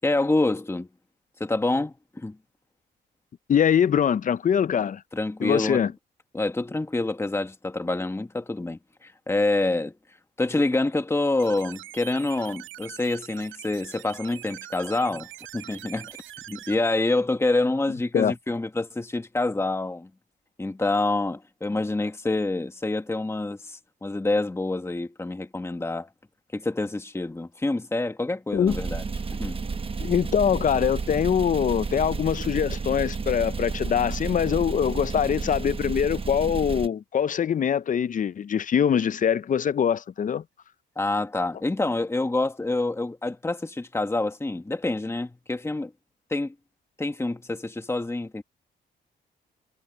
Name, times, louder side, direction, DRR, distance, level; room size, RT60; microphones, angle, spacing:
voice 1, 0.0-0.9 1.4-2.4 5.1-5.9 6.3-9.9 10.4-15.3 15.5-16.2 16.5-20.1 20.6-26.1 26.5-29.0 29.4-29.6 40.9-45.9 46.3-46.5 47.0-48.4, left 2 dB, 15° left, 1.6 m, -27 dB
voice 2, 3.5-5.0 5.4-5.9 18.1-18.3 28.5-28.8 30.0-40.4, left 8 dB, 40° left, 0.6 m, -23 dB
sound 1, 11.4-16.8, right 14 dB, 85° right, 6.2 m, -43 dB
sound 2, 28.5-34.7, right 9 dB, 65° right, 2.3 m, -46 dB
sound 3, 28.7-36.9, right 4 dB, 30° right, 1.1 m, -31 dB
cardioid pair, 90°, 20 cm